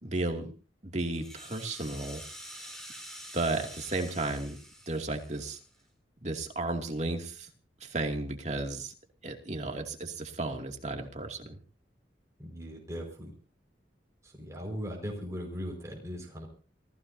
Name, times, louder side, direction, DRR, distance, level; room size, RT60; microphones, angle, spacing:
voice 1, 0.0-0.5 0.8-2.2 3.3-4.6 4.9-5.6 6.2-7.5 7.8-8.9 9.2-11.6, right 2 dB, 40° right, 3 dB, 2.5 m, -33 dB
Rattle (instrument), 1.0-5.8, equal, 5° left, 6.4 m, -47 dB
voice 2, 12.4-13.3 14.2-16.5, equal, 15° right, 0 dB, 5.2 m, -39 dB
28.5 x 16.0 x 2.8 m, 0.37 s
head